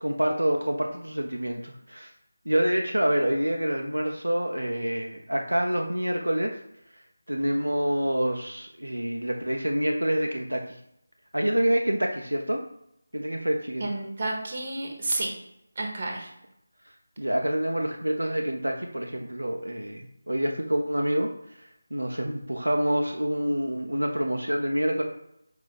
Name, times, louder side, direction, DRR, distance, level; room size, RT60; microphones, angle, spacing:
voice 1, 0.0-2.1 2.5-6.5 7.3-10.6 11.3-12.6 13.1-13.9 17.2-21.3 21.9-25.0, right 1 dB, 80° right, 2 dB, 0.5 m, -27 dB
voice 2, 13.8-15.3 15.8-16.3, right 2 dB, 40° right, 0 dB, 1.1 m, -30 dB
4.8 x 2.4 x 3.8 m, 0.79 s
figure-of-eight pair, 160°, 0 cm